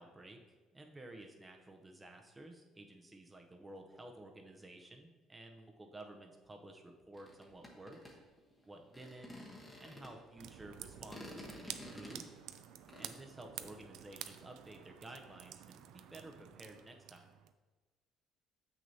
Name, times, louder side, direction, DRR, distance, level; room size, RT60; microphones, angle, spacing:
voice 1, 0.0-8.0 8.7-9.3 9.8-12.2 13.0-17.2, right 1 dB, 15° right, 3 dB, 0.7 m, -53 dB
sound 1, 7.1-10.3 10.9-13.1, left 1 dB, 15° left, 1.1 m, -51 dB
sound 2, 10.4-17.5, right 11 dB, 80° right, 0.4 m, -50 dB
7.5 x 6.2 x 2.8 m, 1.3 s
cardioid pair, 135°, 0 cm